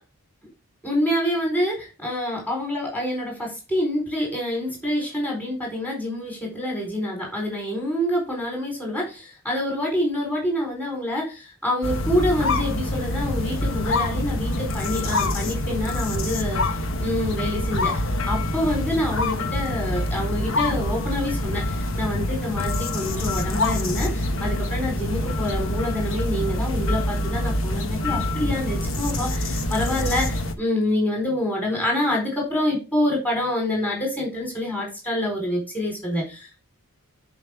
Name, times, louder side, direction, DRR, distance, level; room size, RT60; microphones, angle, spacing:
voice 1, 0.8-36.6, left 1 dB, 10° left, -1 dB, 4.2 m, -27 dB
sound 1, 11.8-30.5, left 1 dB, 60° left, 1.2 m, -26 dB
10.5 x 5.3 x 3.6 m, 0.29 s
head